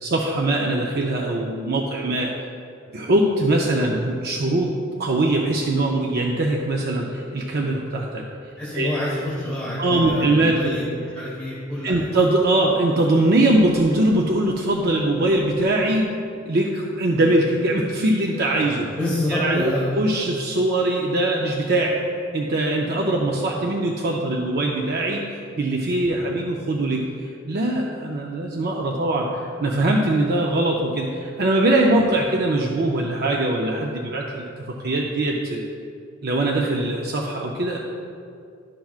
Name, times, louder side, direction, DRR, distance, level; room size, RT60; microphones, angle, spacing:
voice 1, 0.0-2.3 2.9-4.7 5.0-8.2 8.7-8.9 9.8-10.7 11.8-16.1 16.5-18.9 19.3-22.0 22.3-27.0 27.5-35.6 36.2-37.8, right 1 dB, 50° right, -1 dB, 0.5 m, -22 dB
voice 2, 8.6-12.1 18.6-19.9 23.2-23.4 26.1-26.3, left 1 dB, 5° left, -8 dB, 1.2 m, -28 dB
11.5 x 5.8 x 2.4 m, 2.4 s
head